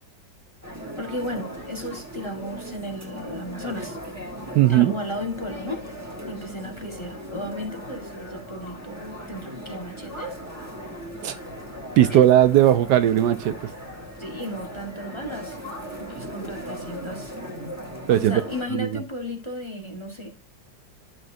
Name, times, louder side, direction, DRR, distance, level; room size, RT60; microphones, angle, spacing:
sound 1, 0.6-18.6, equal, 10° right, 2.1 m, -38 dB
voice 1, 1.0-4.0 4.7-5.8 6.3-10.4 12.1-12.2 14.2-15.6 16.0-17.3 18.1-20.3, left 1 dB, 15° left, 1.3 m, -34 dB
voice 2, 4.5-4.9 11.2-11.3 12.0-13.6 18.1-18.4 18.7-19.0, right 12 dB, 75° right, 1.1 m, -17 dB
11.5 x 6.5 x 2.7 m
omnidirectional pair, 2.0 m